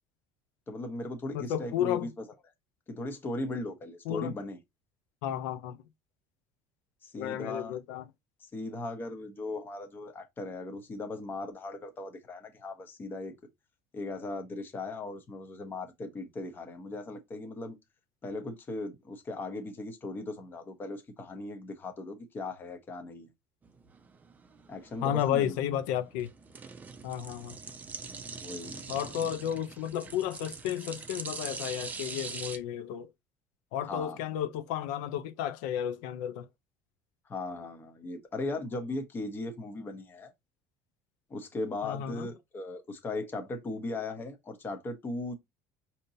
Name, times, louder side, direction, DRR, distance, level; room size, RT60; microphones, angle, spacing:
voice 1, 0.7-2.3 2.9-4.6 7.0-7.8 8.4-13.4 13.9-17.8 18.2-23.3 24.7-25.6 28.4-28.9 33.9-34.2 37.3-40.3 41.3-45.4, left 2 dB, 25° left, 0.8 m, -38 dB
voice 2, 1.3-2.1 4.1-4.3 5.2-5.8 7.2-8.0 25.0-26.3 27.0-27.5 28.9-33.1 33.7-36.5 41.8-42.3, left 10 dB, 90° left, 0.5 m, -32 dB
sound 1, 23.6-32.6, right 4 dB, 20° right, 0.5 m, -43 dB
5.1 x 2.8 x 2.6 m
cardioid pair, 155°, 9 cm